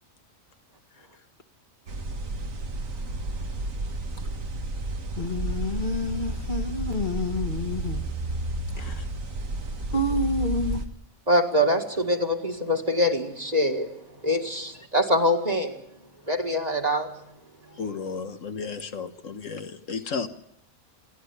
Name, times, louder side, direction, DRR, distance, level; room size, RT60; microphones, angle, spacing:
sound 1, 1.9-10.9, right 2 dB, 75° right, 2.1 m, -32 dB
voice 1, 5.2-8.0 8.8-9.0 9.9-10.8, left 1 dB, 35° left, 6 dB, 1.6 m, -28 dB
voice 2, 11.3-13.9 14.2-15.8 16.3-17.1, left 1 dB, 30° right, 3 dB, 2.0 m, -24 dB
voice 3, 17.8-20.3, left 5 dB, 70° left, 8 dB, 1.6 m, -33 dB
27.0 x 12.0 x 9.8 m, 0.79 s
omnidirectional pair, 1.4 m